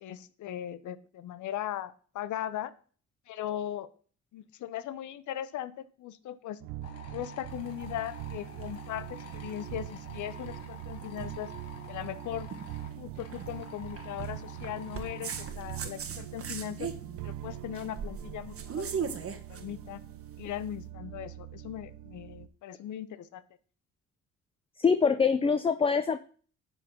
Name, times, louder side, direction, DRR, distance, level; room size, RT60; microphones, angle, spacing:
voice 1, 0.0-2.7 3.3-3.9 4.3-6.6 7.1-9.1 9.3-11.5 11.9-12.5 13.0-16.9 17.2-19.2 19.5-20.0 20.4-23.4, left 11 dB, 75° left, 15 dB, 0.8 m, -38 dB
sound 1, 6.6-22.5, right 14 dB, 90° right, 0.7 m, -43 dB
sound 2, 6.8-15.5, left 6 dB, 55° left, 1.6 m, -50 dB
sound 3, 7.5-20.7, right 6 dB, 50° right, 1.2 m, -41 dB
voice 2, 24.8-26.2, left 5 dB, 20° left, 12 dB, 0.5 m, -24 dB
10.5 x 4.0 x 5.9 m, 0.43 s
cardioid pair, 90°, 30 cm